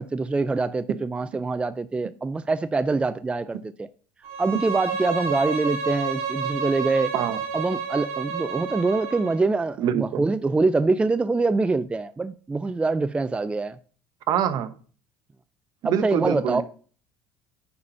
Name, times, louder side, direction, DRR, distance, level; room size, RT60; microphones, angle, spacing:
voice 1, 0.0-3.9 4.4-7.1 7.5-13.8 15.8-16.6, right 3 dB, 15° right, 0.4 m, -24 dB
Bowed string instrument, 4.2-9.4, right 5 dB, 85° right, 1.7 m, -30 dB
voice 2, 9.8-10.2 14.3-14.7 15.8-16.6, right 9 dB, 60° right, 1.0 m, -24 dB
9.5 x 4.1 x 5.5 m
supercardioid pair, 100°, 8 cm